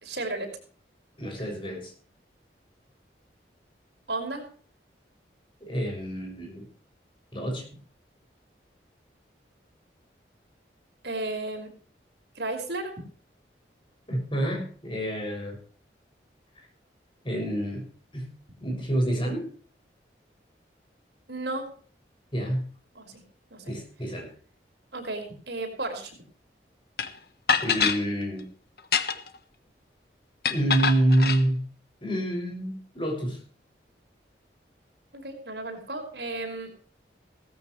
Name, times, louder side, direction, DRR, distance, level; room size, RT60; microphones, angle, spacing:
voice 1, 0.0-0.5 4.1-4.5 11.0-11.7 12.4-12.9 21.3-21.7 22.9-23.2 23.5-23.6 24.9-26.1 35.1-36.7, right 2 dB, 70° right, 2 dB, 5.2 m, -33 dB
voice 2, 1.2-1.9 5.6-6.7 7.3-7.6 14.1-15.6 16.6-16.7 17.2-17.8 18.1-18.3 18.6-19.5 22.3-22.7 23.7-24.3 27.6-28.5 30.5-31.6 32.0-33.4, right 1 dB, 30° left, 1 dB, 6.7 m, -27 dB
sound 1, 27.0-27.1 27.5-28.0 28.8-29.4 30.4-31.4, left 6 dB, 55° left, 1.3 m, -25 dB
17.0 x 14.5 x 3.2 m, 0.44 s
head